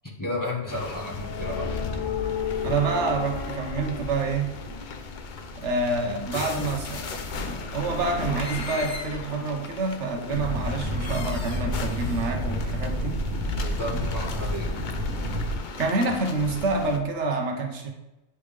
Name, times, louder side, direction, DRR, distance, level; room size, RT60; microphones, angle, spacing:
voice 1, 0.0-1.7 13.6-14.7, left 1 dB, 20° left, -4 dB, 1.0 m, -33 dB
sound 1, 0.7-17.0, left 4 dB, 50° left, 0.7 m, -34 dB
voice 2, 2.6-4.5 5.6-13.2 13.9-14.1 15.8-17.9, right 3 dB, 80° right, 3 dB, 1.2 m, -27 dB
sound 2, 10.3-15.6, equal, 60° right, 1.6 m, -30 dB
9.8 x 3.5 x 3.3 m, 1.0 s
omnidirectional pair, 1.2 m